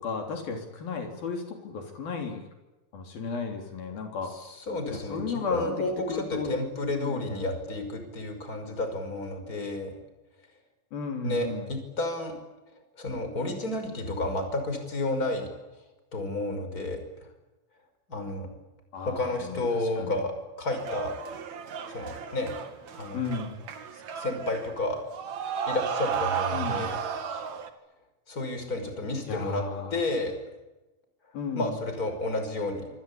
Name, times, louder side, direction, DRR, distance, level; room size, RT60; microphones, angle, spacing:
voice 1, 0.0-2.4 2.9-4.3 4.9-6.5 6.9-7.3 10.9-11.7 18.9-20.2 23.1-23.6 26.5-26.9 29.3-29.9 31.3-31.8, left 4 dB, 75° left, 3 dB, 5.3 m, -34 dB
voice 2, 4.3-9.9 11.2-12.4 13.0-15.5 16.1-17.0 18.1-18.5 19.0-21.1 21.9-22.5 23.0-23.2 23.9-25.0 25.7-27.0 28.3-29.6 29.9-30.4 31.5-32.9, left 2 dB, 25° left, 6 dB, 5.9 m, -31 dB
sound 1, 20.7-27.7, right 7 dB, 55° right, 3.1 m, -34 dB
27.0 x 25.5 x 8.7 m, 1.0 s
omnidirectional pair, 4.2 m